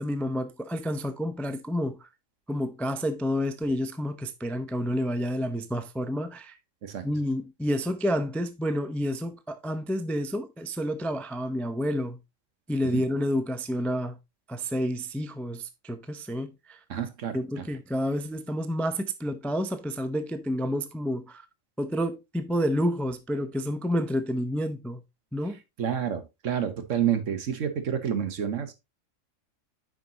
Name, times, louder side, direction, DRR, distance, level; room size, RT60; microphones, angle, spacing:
voice 1, 0.0-2.0 2.5-6.5 7.0-12.2 12.7-14.2 14.5-16.8 17.3-21.4 21.8-25.0 25.3-25.6, equal, ahead, 0.3 m, -29 dB
voice 2, 16.9-17.7 25.8-28.7, right 8 dB, 75° right, 1.4 m, -29 dB
9.4 x 5.2 x 2.9 m
omnidirectional pair, 1.3 m